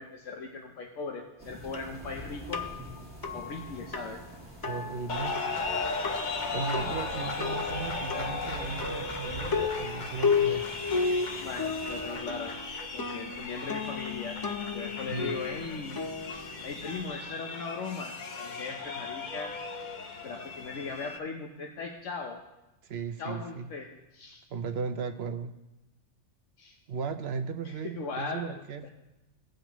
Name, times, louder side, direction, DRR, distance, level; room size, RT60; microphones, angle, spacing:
voice 1, 0.0-2.6 3.3-4.2 8.4-8.6 10.4-10.6 11.4-12.6 12.9-14.4 14.7-16.0 16.3-19.9 20.2-22.4 23.2-24.4 26.6-26.8 27.6-28.9, left 4 dB, 90° left, 1 dB, 1.2 m, -39 dB
sound 1, 1.4-12.2, right 1 dB, 10° right, 1.6 m, -46 dB
sound 2, 1.7-17.1, left 5 dB, 30° left, 0.4 m, -34 dB
voice 2, 4.6-5.4 6.5-10.6 15.1-15.4 22.8-23.7 24.5-25.5 26.9-28.9, right 5 dB, 65° right, 8 dB, 0.9 m, -36 dB
sound 3, 5.1-21.2, left 3 dB, 45° left, 0.8 m, -37 dB
17.0 x 7.8 x 3.0 m, 0.99 s
omnidirectional pair, 1.2 m